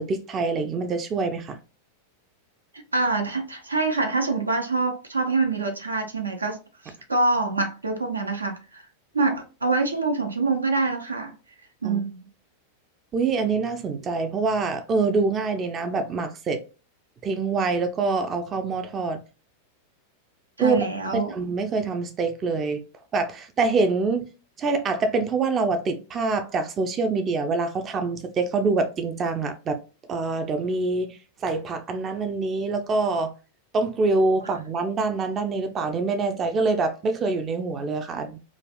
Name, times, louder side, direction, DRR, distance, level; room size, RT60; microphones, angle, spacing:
voice 1, 0.0-1.6 11.8-12.0 13.1-16.6 17.2-19.2 20.6-20.8 21.1-22.8 23.1-24.3 24.6-29.8 30.1-33.3 33.7-38.4, right 3 dB, 25° right, 0.4 m, -25 dB
voice 2, 2.9-6.6 7.1-8.8 9.1-11.3 11.8-12.3 20.6-21.3, right 3 dB, 80° right, 0.5 m, -25 dB
3.3 x 2.3 x 2.2 m
figure-of-eight pair, 90°, 0 cm